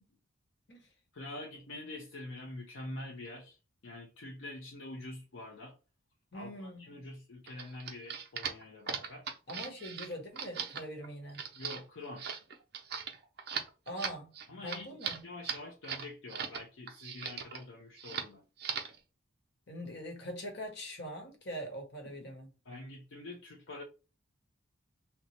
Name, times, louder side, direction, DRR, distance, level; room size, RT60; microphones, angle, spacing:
voice 1, 1.1-3.6 3.8-5.8 6.3-9.3 11.5-12.3 14.5-18.4 22.2-22.3 22.7-23.8, left 2 dB, 70° left, 0.6 m, -46 dB
voice 2, 6.3-6.9 9.5-11.5 13.9-14.4 14.6-15.2 19.7-22.5, equal, 55° left, 1.0 m, -43 dB
sound 1, 7.5-16.6 16.9-17.6 18.0-18.3 18.6-19.0, right 7 dB, 50° right, 0.5 m, -39 dB
2.9 x 2.0 x 4.1 m
head